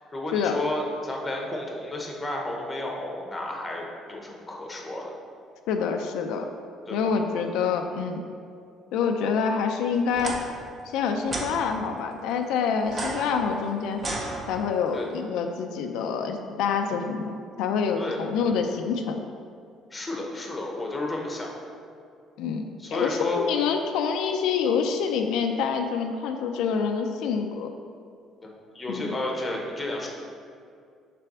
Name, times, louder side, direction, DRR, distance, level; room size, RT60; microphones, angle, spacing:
voice 1, 0.1-5.1 6.9-7.1 14.9-15.1 18.0-18.2 19.9-21.5 22.8-23.4 28.4-30.1, left 2 dB, 15° left, 0 dB, 0.8 m, -32 dB
voice 2, 5.7-6.5 6.9-8.2 8.9-10.4 10.9-14.0 14.5-19.2 22.4-22.6 22.9-27.7 28.9-29.1, left 6 dB, 85° left, 4 dB, 0.5 m, -26 dB
sound 1, 10.1-10.4 11.3-11.5 12.8-14.9, right 2 dB, 25° right, 0.7 m, -33 dB
6.7 x 3.4 x 6.0 m, 2.3 s
cardioid pair, 165°, 0 cm